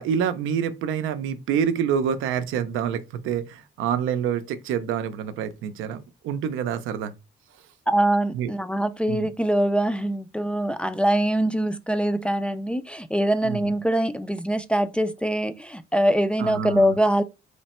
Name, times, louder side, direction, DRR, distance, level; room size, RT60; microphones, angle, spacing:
voice 1, 0.0-7.1 8.3-8.5 9.1-9.3 13.4-13.6 16.4-17.0, right 8 dB, 90° right, 0.5 m, -27 dB
voice 2, 7.9-17.2, right 1 dB, 5° left, 0.3 m, -23 dB
3.2 x 2.1 x 4.2 m
cardioid pair, 90°, 20 cm